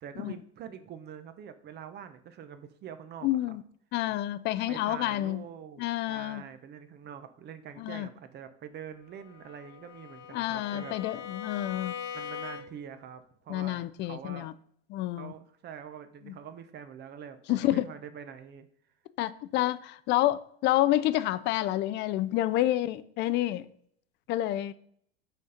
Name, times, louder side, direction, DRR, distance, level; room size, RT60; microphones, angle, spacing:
voice 1, 0.0-3.6 4.1-4.2 4.7-11.0 12.1-14.5 15.1-18.7, right 8 dB, 30° right, 0.7 m, -45 dB
voice 2, 3.2-3.6 3.9-5.5 5.8-6.4 7.8-8.1 10.3-11.9 13.5-14.5 14.9-15.3 16.3-16.4 17.5-17.9 19.2-23.7 24.3-24.7, left 14 dB, 30° left, 0.4 m, -29 dB
Bowed string instrument, 9.1-13.0, left 8 dB, 85° left, 1.3 m, -41 dB
6.2 x 4.3 x 5.0 m
supercardioid pair, 125°, 35 cm